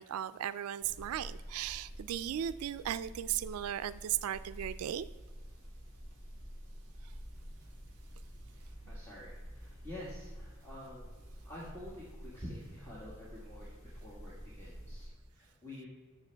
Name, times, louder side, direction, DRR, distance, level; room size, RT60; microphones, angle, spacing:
voice 1, 0.0-5.1, right 10 dB, 85° right, 15 dB, 0.3 m, -36 dB
sound 1, 0.8-15.1, equal, 30° left, 3.0 m, -49 dB
sound 2, 7.1-15.0, right 1 dB, 15° right, 2.5 m, -65 dB
voice 2, 8.5-15.9, left 1 dB, 10° left, -8 dB, 1.6 m, -49 dB
13.0 x 6.5 x 3.4 m, 1.4 s
head